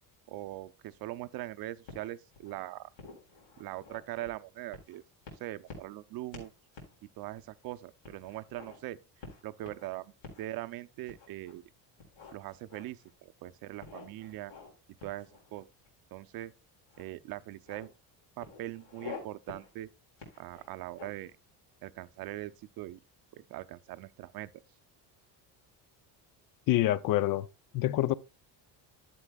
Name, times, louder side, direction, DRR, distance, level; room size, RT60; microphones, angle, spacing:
voice 1, 0.3-2.9 3.6-5.0 5.4-6.5 7.2-9.0 9.4-10.1 10.4-11.6 12.3-14.5 15.0-15.7 16.1-16.5 17.0-17.9 18.4-19.9 20.4-21.3 21.8-23.0 23.3-24.5, right 15 dB, 55° right, 0.6 m, -41 dB
sound 1, 1.9-2.5 3.0-4.3 4.7-5.0 5.3-6.0 6.3-6.5 6.7-7.0 7.4-7.5 8.0-8.8 9.2-9.9 10.2-10.5 11.1-11.6 12.0-13.1 13.8-14.7 15.0-15.9 16.9-17.0 17.4-17.9 18.4-19.2 19.5-19.7 20.2-21.3, left 4 dB, 85° left, 4.2 m, -48 dB
voice 2, 26.7-27.5 27.7-28.1, left 15 dB, 50° left, 0.5 m, -26 dB
11.5 x 7.7 x 2.3 m
cardioid pair, 165°, 44 cm